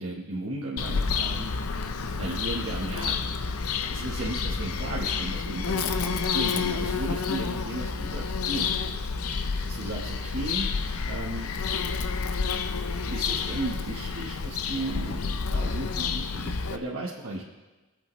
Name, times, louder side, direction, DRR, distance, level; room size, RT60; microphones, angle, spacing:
voice 1, 0.0-1.5 2.2-3.2 3.9-8.7 9.6-10.7 11.1-11.5 13.1-17.4, right 2 dB, 60° right, -5 dB, 1.4 m, -35 dB
Bird vocalization bird call bird song, 0.8-16.8, left 5 dB, 80° left, 0.7 m, -29 dB
24.5 x 8.6 x 3.2 m, 1.2 s
head